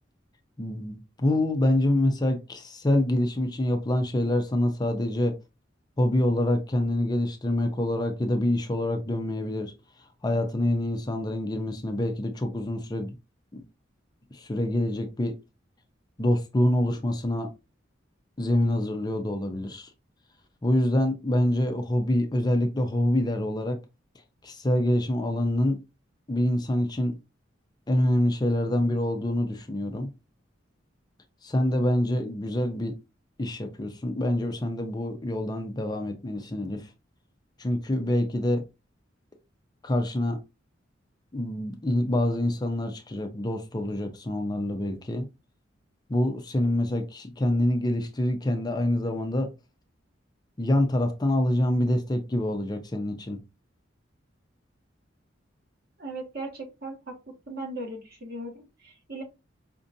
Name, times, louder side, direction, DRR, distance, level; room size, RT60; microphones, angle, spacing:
voice 1, 0.6-5.4 6.0-9.7 10.2-13.2 13.5-13.6 14.3-15.4 16.2-17.5 18.4-19.9 20.6-23.8 24.4-25.8 26.3-27.2 27.9-30.1 31.4-32.9 33.4-36.9 37.6-38.6 39.8-40.4 41.3-45.3 46.1-49.5 50.6-53.4, left 1 dB, 20° left, 0.5 m, -26 dB
voice 2, 56.0-57.2 57.5-59.2, right 2 dB, 55° right, 1.6 m, -38 dB
5.1 x 2.4 x 2.6 m
head